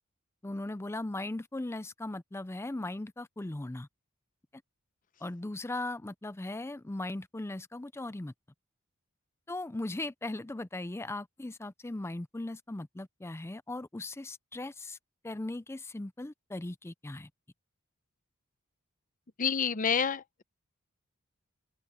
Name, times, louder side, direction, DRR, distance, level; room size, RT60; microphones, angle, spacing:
voice 1, 0.4-3.9 5.2-8.3 9.5-15.0 15.2-17.3, left 2 dB, 10° left, 0.5 m, -38 dB
voice 2, 19.4-20.4, left 6 dB, 40° left, 0.7 m, -28 dB
open air
head